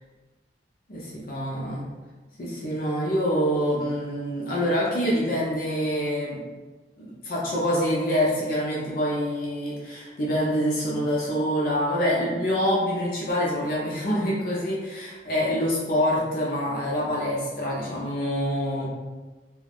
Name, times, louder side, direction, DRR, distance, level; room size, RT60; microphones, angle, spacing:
voice 1, 0.9-1.9 2.4-6.4 7.0-18.9, equal, 50° left, -5 dB, 0.5 m, -26 dB
2.4 x 2.3 x 3.4 m, 1.3 s
head